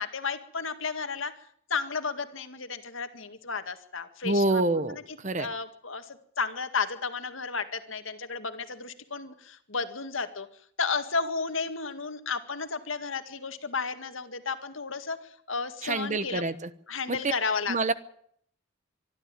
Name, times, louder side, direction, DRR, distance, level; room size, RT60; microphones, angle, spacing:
voice 1, 0.0-1.3 1.7-4.6 4.9-10.5 10.8-16.4 16.9-17.9, left 5 dB, 70° left, 9 dB, 2.0 m, -33 dB
voice 2, 4.2-5.5 15.8-16.5 17.1-17.3 17.7-17.9, right 2 dB, 35° right, 14 dB, 1.0 m, -27 dB
24.5 x 12.5 x 9.1 m, 0.66 s
head